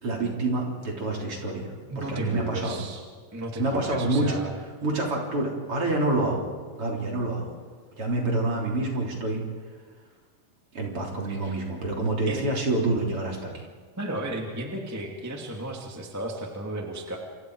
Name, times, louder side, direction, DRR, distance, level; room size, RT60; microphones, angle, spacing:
voice 1, 0.0-2.8 3.6-4.4 4.8-6.5 6.8-7.5 8.0-9.4 10.7-13.7, right 2 dB, 35° right, -1 dB, 4.2 m, -27 dB
voice 2, 1.9-3.0 3.3-4.5 11.2-11.6 12.2-12.5 14.0-17.2, right 1 dB, 5° right, 0 dB, 1.6 m, -34 dB
28.5 x 25.0 x 4.8 m, 1.5 s
omnidirectional pair, 4.4 m